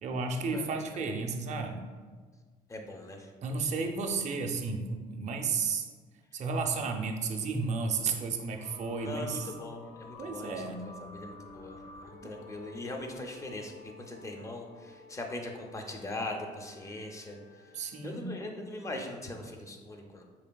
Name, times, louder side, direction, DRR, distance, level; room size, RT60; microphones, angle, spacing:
voice 1, 0.0-1.8 3.4-5.9 6.3-9.5 10.2-10.9 12.2-12.4 17.7-18.3, right 4 dB, 45° right, 3 dB, 0.5 m, -33 dB
voice 2, 2.7-3.3 9.0-11.8 12.0-17.4 18.0-20.2, left 2 dB, 20° left, 3 dB, 0.5 m, -40 dB
sound 1, 8.5-18.2, left 3 dB, 75° left, 0.4 m, -52 dB
4.5 x 3.2 x 2.2 m, 1.5 s
cardioid pair, 110°, 17 cm